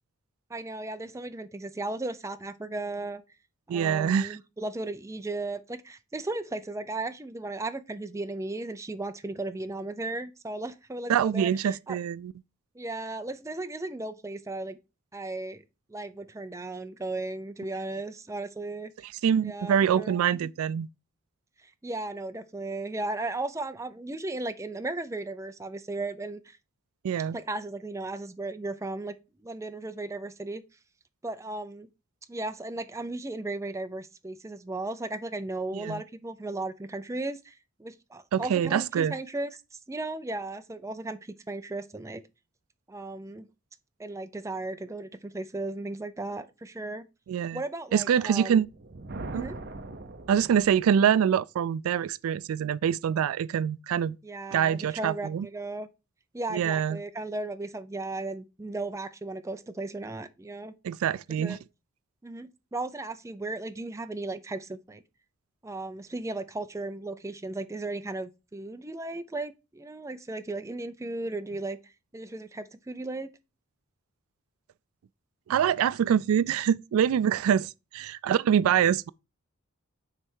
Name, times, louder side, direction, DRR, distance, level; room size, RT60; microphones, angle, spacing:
voice 1, 0.5-3.2 3.7-12.0 12.8-14.8 15.1-15.6 15.9-18.9 19.4-20.2 21.6-26.6 27.3-29.1 29.4-30.6 31.2-31.9 32.3-42.2 42.9-43.5 44.0-47.1 47.5-48.6 49.3-49.6 54.2-55.9 56.3-60.7 61.4-61.6 62.2-65.0 65.6-73.3, right 2 dB, 15° right, 0.5 m, -36 dB
voice 2, 3.7-4.4 11.1-12.3 19.2-20.9 27.0-27.4 35.7-36.0 38.3-39.2 47.3-47.6 47.9-48.7 49.3-49.5 50.3-54.2 54.5-55.5 56.5-57.0 60.8-61.6 75.5-79.1, right 8 dB, 80° right, 0.3 m, -25 dB
Thunder, 48.6-51.1, right 2 dB, 50° right, 0.8 m, -41 dB
9.5 x 3.3 x 4.6 m
head